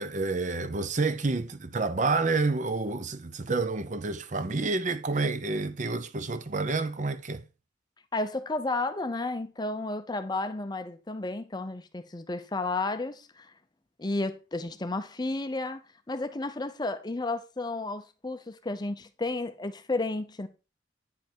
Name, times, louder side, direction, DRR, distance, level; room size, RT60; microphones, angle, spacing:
voice 1, 0.0-7.4, right 3 dB, 40° right, 0.7 m, -29 dB
voice 2, 8.1-13.5 14.0-15.8 16.1-20.5, left 2 dB, 20° left, 0.5 m, -32 dB
9.3 x 5.3 x 4.4 m
head